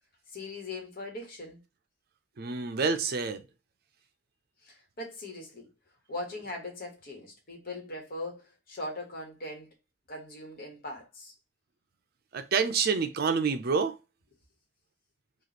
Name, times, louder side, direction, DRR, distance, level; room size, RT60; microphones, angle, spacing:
voice 1, 0.3-1.6 4.6-5.7 6.1-9.7 10.1-11.3, left 2 dB, 50° left, 1.3 m, -40 dB
voice 2, 2.4-3.4 12.3-13.9, right 5 dB, 55° right, 0.5 m, -27 dB
3.1 x 2.4 x 4.0 m
head